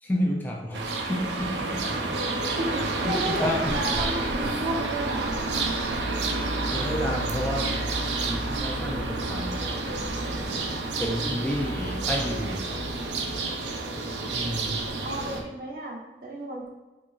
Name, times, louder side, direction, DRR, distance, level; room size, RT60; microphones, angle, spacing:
voice 1, 0.0-2.2 3.0-3.7 6.7-7.7 8.0-10.1 10.3-10.7 11.0-12.8 14.3-15.0, equal, 10° left, -2 dB, 0.5 m, -31 dB
sound 1, 0.7-15.4, right 2 dB, 90° right, 0.6 m, -29 dB
voice 2, 2.3-5.4 15.0-16.7, right 1 dB, 55° right, -3 dB, 1.2 m, -33 dB
4.6 x 4.0 x 2.5 m, 1.2 s
head